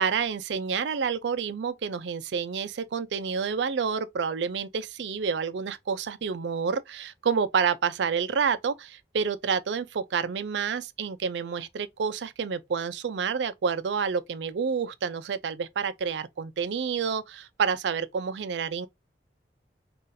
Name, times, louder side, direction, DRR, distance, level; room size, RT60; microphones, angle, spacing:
voice 1, 0.0-18.9, right 6 dB, 80° right, 0.4 m, -29 dB
3.9 x 2.4 x 2.5 m
head